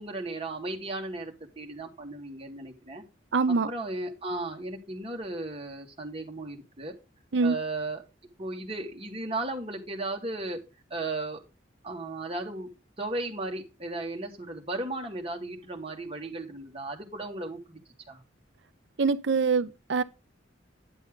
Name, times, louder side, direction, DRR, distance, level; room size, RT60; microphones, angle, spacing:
voice 1, 0.0-3.0 3.7-6.9 7.4-8.0 8.4-10.6 10.9-11.4 11.8-12.7 13.0-17.8 18.1-18.2, right 2 dB, 30° right, 1.9 m, -35 dB
voice 2, 3.3-3.7 7.3-7.6 19.0-20.0, right 4 dB, 70° right, 0.6 m, -24 dB
10.5 x 7.1 x 3.6 m
head